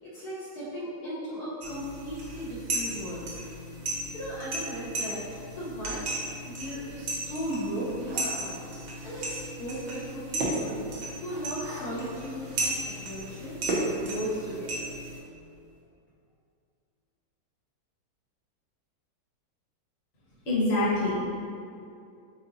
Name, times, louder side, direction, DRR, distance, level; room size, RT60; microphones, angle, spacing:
voice 1, 0.0-3.3 3.9-6.1 6.4-8.6 9.0-10.8 11.2-13.6 14.0-14.9, right 1 dB, 70° left, -8 dB, 1.2 m, -37 dB
sound 1, 1.6-15.2, right 1 dB, 65° right, 1.3 m, -36 dB
sound 2, 6.9-14.8 15.1-15.2 15.5-15.7, right 2 dB, 90° right, 1.5 m, -37 dB
voice 2, 20.4-21.2, left 2 dB, 40° left, -7 dB, 1.2 m, -25 dB
5.4 x 3.7 x 2.7 m, 2.5 s
omnidirectional pair, 1.9 m